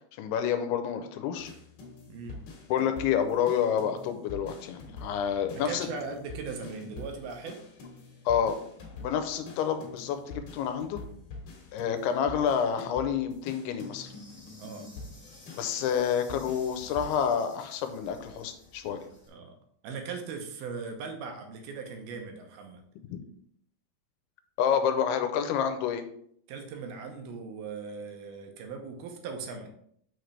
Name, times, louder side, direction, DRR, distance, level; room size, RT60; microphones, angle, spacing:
voice 1, 0.2-1.5 2.7-5.9 8.3-8.6 9.0-11.0 11.7-14.1 15.5-19.0 23.1-23.2 24.6-26.0, left 8 dB, 85° left, 8 dB, 2.7 m, -28 dB
sound 1, 1.4-17.3, left 3 dB, 60° left, 2.6 m, -46 dB
voice 2, 2.1-2.4 5.6-7.7 14.6-14.9 19.3-19.6 19.8-22.8 26.5-29.7, right 5 dB, 75° right, 4 dB, 2.7 m, -39 dB
Insect, 13.8-19.3, left 1 dB, 25° left, 1.2 m, -53 dB
6.4 x 6.4 x 3.3 m, 0.66 s
omnidirectional pair, 4.6 m